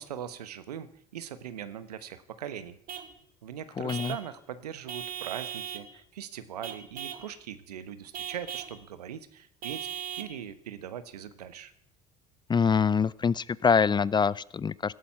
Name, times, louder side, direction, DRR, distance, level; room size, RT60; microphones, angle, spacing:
voice 1, 0.0-2.8 3.4-11.7, right 9 dB, 80° right, 13 dB, 1.1 m, -41 dB
Vehicle horn car horn honking / Truck, 2.9-3.1 3.9-4.3 4.9-5.9 6.6-7.3 8.1-8.8 9.6-10.4, right 9 dB, 45° right, 1.9 m, -38 dB
voice 2, 3.8-4.1 12.5-14.9, left 6 dB, 25° left, 22 dB, 0.5 m, -25 dB
18.5 x 13.0 x 5.8 m, 0.69 s
hypercardioid pair, 65°, 20 cm